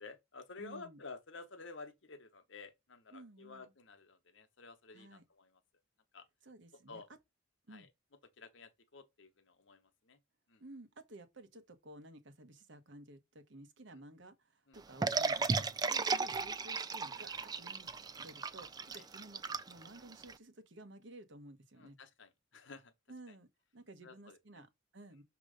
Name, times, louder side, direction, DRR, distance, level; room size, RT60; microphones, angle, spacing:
voice 1, 0.0-5.6 6.1-6.3 6.9-7.1 7.7-7.9 8.4-10.2 10.5-10.6 14.7-14.8 18.9-19.1 21.8-22.9 24.0-24.6, left 4 dB, 65° left, 1.0 m, -52 dB
voice 2, 0.6-1.0 3.1-3.7 4.9-5.2 6.4-7.0 7.7-7.9 10.6-17.9 18.2-22.0 23.1-25.2, right 1 dB, 60° right, 1.0 m, -54 dB
sound 1, 15.0-20.3, right 4 dB, 20° right, 0.3 m, -35 dB
6.4 x 3.0 x 4.9 m
head